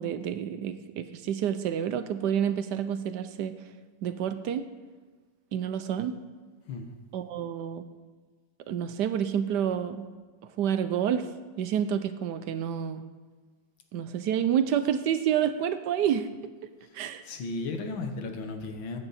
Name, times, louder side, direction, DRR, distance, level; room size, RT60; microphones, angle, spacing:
voice 1, 0.0-3.6 4.0-4.6 5.5-6.1 7.1-7.8 8.7-10.1 10.6-11.3 11.6-13.1 13.9-16.3 16.9-17.2, right 9 dB, 70° right, 11 dB, 1.1 m, -28 dB
voice 2, 17.3-19.0, left 3 dB, 90° left, 6 dB, 2.0 m, -34 dB
15.0 x 9.8 x 4.2 m, 1.4 s
omnidirectional pair, 2.1 m